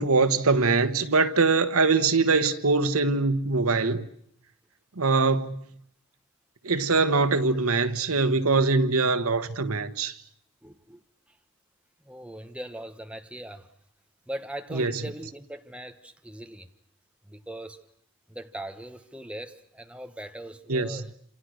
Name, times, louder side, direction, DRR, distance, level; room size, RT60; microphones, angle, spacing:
voice 1, 0.0-4.1 5.0-5.6 6.6-10.2 14.7-14.9 20.7-21.0, right 3 dB, 90° right, 1.4 m, -23 dB
voice 2, 10.6-11.0 11.3-11.4 12.0-13.7 14.3-16.7 17.3-17.8 18.3-21.1, right 1 dB, 5° right, 1.2 m, -40 dB
27.5 x 27.5 x 6.5 m
head